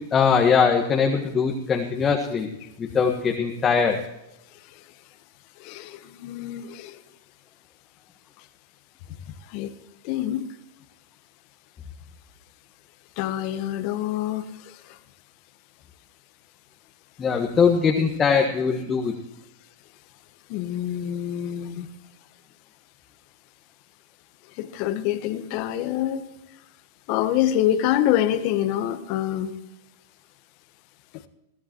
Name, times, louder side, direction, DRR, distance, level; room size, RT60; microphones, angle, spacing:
voice 1, 0.1-2.5 2.9-4.0 17.2-19.1, left 6 dB, 20° left, 1 dB, 1.5 m, -21 dB
voice 2, 5.6-6.9 9.5-9.7 10.0-10.4 13.2-14.4 20.5-21.9 24.6-26.3 27.1-29.5, left 12 dB, 50° left, 10 dB, 1.2 m, -26 dB
21.5 x 14.0 x 3.0 m, 0.92 s
hypercardioid pair, 110°, 0 cm